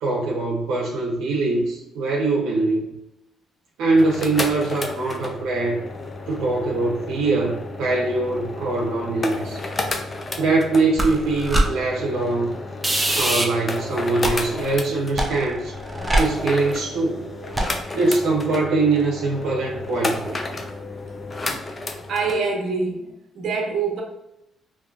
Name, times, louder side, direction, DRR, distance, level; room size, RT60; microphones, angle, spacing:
voice 1, 0.0-2.9 3.8-5.8 6.3-9.6 10.4-12.5 13.1-15.7 16.2-17.2 17.9-20.4, right 3 dB, 90° right, -3 dB, 0.7 m, -22 dB
sound 1, 3.9-22.4, left 2 dB, 30° left, 0.5 m, -32 dB
sound 2, 11.0-11.7 12.8-13.4 14.2-14.7 15.2-16.7 17.6-17.8, right 1 dB, 15° right, 0.6 m, -23 dB
voice 2, 22.1-24.0, right 4 dB, 60° right, -1 dB, 1.0 m, -25 dB
3.6 x 2.6 x 2.4 m, 0.87 s
cardioid pair, 90°, 0 cm